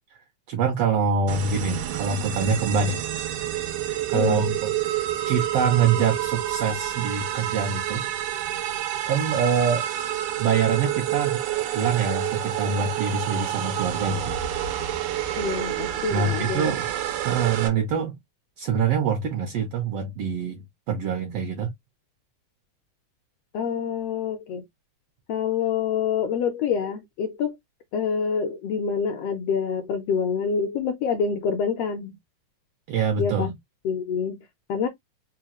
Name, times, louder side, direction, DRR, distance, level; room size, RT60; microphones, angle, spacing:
voice 1, 0.5-3.0 4.1-4.7 5.3-8.1 9.1-9.9 10.4-11.4 11.7-14.4 16.1-16.9 17.2-18.1 18.6-21.7 32.9-33.5, right 6 dB, 70° right, 1.5 m, -25 dB
sound 1, 1.3-17.7, right 12 dB, 90° right, 2.2 m, -28 dB
voice 2, 15.4-16.7 23.5-24.7 25.3-27.5 27.9-32.2 33.2-33.5 33.8-34.4 34.7-34.9, left 6 dB, 80° left, 1.4 m, -26 dB
4.8 x 2.2 x 2.9 m
omnidirectional pair, 3.4 m